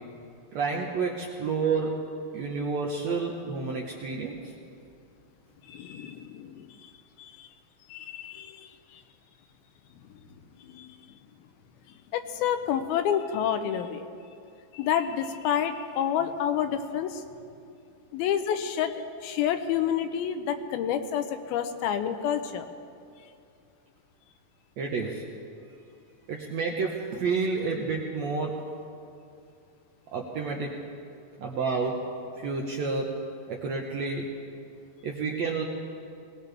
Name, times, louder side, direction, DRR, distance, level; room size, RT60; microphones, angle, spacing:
voice 1, 0.5-2.0 2.3-4.5 24.8-25.2 26.3-28.6 30.1-30.7 31.4-32.0 32.4-34.3 35.0-35.6, right 4 dB, 70° right, -1 dB, 1.7 m, -30 dB
voice 2, 5.6-6.9 7.2-7.5 7.9-9.0 10.0-10.1 10.6-11.2 11.9-14.1 14.7-17.2 18.1-22.7, left 9 dB, 80° left, 8 dB, 2.6 m, -29 dB
21.0 x 19.0 x 3.4 m, 2.4 s
omnidirectional pair, 4.4 m